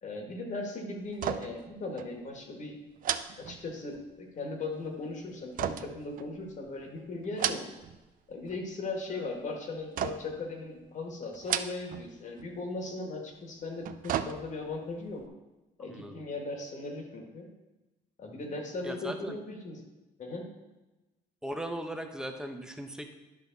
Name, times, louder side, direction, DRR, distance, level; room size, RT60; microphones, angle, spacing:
voice 1, 0.0-2.8 3.4-7.6 8.3-15.2 15.8-17.5 18.2-19.8 20.2-20.5, left 2 dB, 45° left, 2 dB, 1.8 m, -38 dB
sound 1, 1.1-1.7 2.0-2.1 3.0-4.1 5.6-6.7 7.2-8.0 8.3-8.9 10.0-10.5 11.3-12.1 12.4-12.5 13.6-14.8 15.2-15.3, right 10 dB, 55° right, 0.5 m, -34 dB
voice 2, 15.9-16.2 18.8-19.4 21.4-23.2, equal, 5° right, 5 dB, 0.9 m, -38 dB
10.5 x 5.6 x 4.0 m, 1.1 s
cardioid pair, 110°, 17 cm